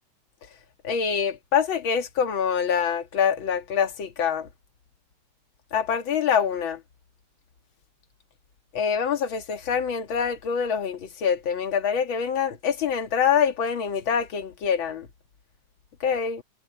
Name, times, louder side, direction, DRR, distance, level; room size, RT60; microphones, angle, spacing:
voice 1, 0.8-4.5 5.7-6.8 8.7-15.1 16.0-16.4, left 7 dB, 45° left, 2.2 m, -25 dB
omnidirectional pair, 3.5 m